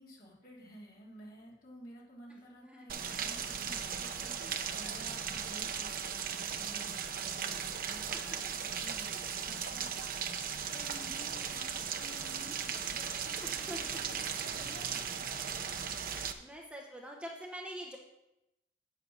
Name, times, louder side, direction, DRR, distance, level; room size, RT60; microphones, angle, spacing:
voice 1, 0.0-4.4 4.7-15.6, equal, 50° left, -5 dB, 3.2 m, -53 dB
voice 2, 2.3-3.2 4.4-5.0 7.4-7.5 7.9-8.6 13.4-14.0 16.3-18.0, equal, 5° right, 0 dB, 0.9 m, -47 dB
Rain, 2.9-16.3, right 7 dB, 50° right, 0.7 m, -37 dB
8.5 x 7.6 x 6.2 m, 0.93 s
head